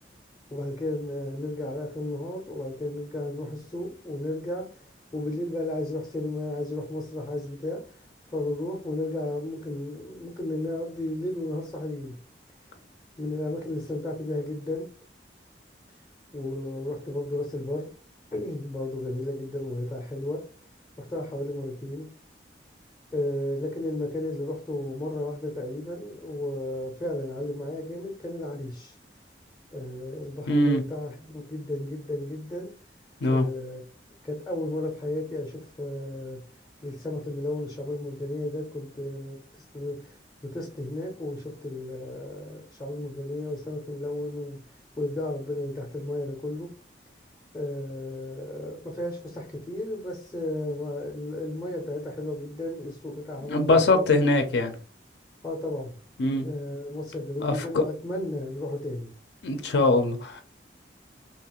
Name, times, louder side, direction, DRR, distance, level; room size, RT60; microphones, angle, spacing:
voice 1, 0.5-4.9 5.1-8.0 8.3-12.1 13.2-14.9 16.3-17.9 18.3-20.4 21.0-22.1 23.1-28.9 29.7-32.7 33.3-33.9 34.2-36.4 36.8-39.4 39.7-44.6 45.0-46.7 47.5-54.0 55.4-56.0 56.4-59.1, left 1 dB, 20° left, 0.5 m, -33 dB
voice 2, 30.5-30.8 33.2-33.4 53.4-54.7 56.2-56.5 57.4-57.8 59.4-60.4, left 2 dB, 75° left, 0.4 m, -22 dB
2.9 x 2.4 x 2.9 m
head